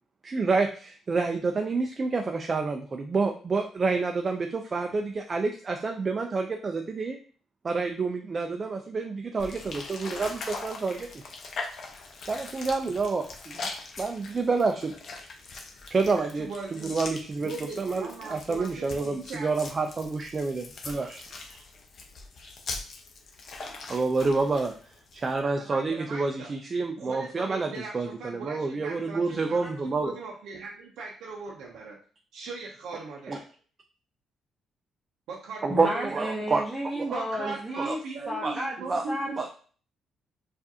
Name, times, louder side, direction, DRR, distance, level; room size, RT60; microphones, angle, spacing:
voice 1, 0.2-7.2 7.6-11.1 12.3-13.7 14.0-14.9 15.9-17.5 17.8-21.6 23.9-24.7 25.1-30.1 33.3-33.4 35.6-36.6 36.9-37.1 37.8-38.0 38.4-38.6 38.9-39.1 39.4-39.5, right 4 dB, 35° right, 4 dB, 0.4 m, -28 dB
sound 1, 9.4-25.4, left 3 dB, 55° left, 0.7 m, -41 dB
voice 2, 16.2-16.9 17.4-19.5 25.4-26.5 27.0-32.0 32.3-33.4 35.3-36.2 37.1-39.4, right 4 dB, 80° right, -2 dB, 0.6 m, -39 dB
voice 3, 35.7-38.0 38.3-38.8 39.1-39.5, equal, 5° right, -4 dB, 0.8 m, -32 dB
4.7 x 2.5 x 2.7 m, 0.43 s
cardioid pair, 90°, 0 cm